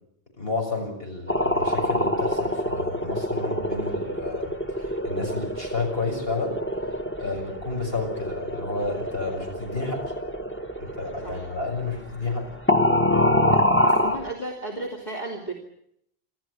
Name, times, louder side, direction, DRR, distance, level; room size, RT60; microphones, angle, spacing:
voice 1, 0.4-6.6 7.2-10.1 10.8-12.5, left 3 dB, 65° left, 1 dB, 7.1 m, -31 dB
sound 1, 1.3-12.4 12.7-14.3, equal, 10° left, 1.4 m, -26 dB
voice 2, 13.8-15.5, right 1 dB, 45° left, 0 dB, 2.9 m, -34 dB
27.5 x 13.5 x 9.8 m, 0.74 s
omnidirectional pair, 1.1 m